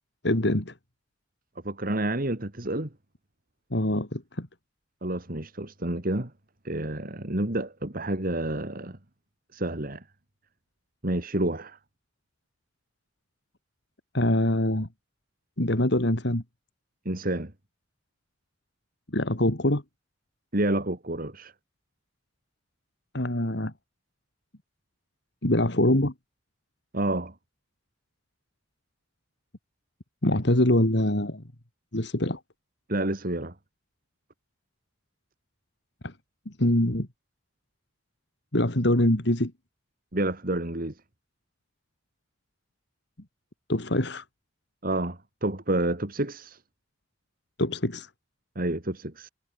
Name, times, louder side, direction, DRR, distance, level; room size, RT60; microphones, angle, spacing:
voice 1, 0.2-0.7 3.7-4.5 14.1-14.9 15.6-16.4 19.1-19.8 23.1-23.7 25.4-26.1 30.2-31.4 31.9-32.4 36.0-36.1 36.5-37.1 38.5-39.5 43.7-44.2 47.6-48.1, left 1 dB, 65° left, 3.0 m, -24 dB
voice 2, 1.6-2.9 5.0-6.3 6.6-9.0 9.5-10.0 11.0-11.8 17.0-17.5 20.5-21.5 26.9-27.3 32.9-33.5 40.1-40.9 44.8-46.6 48.6-49.3, right 1 dB, 50° right, 2.7 m, -29 dB
head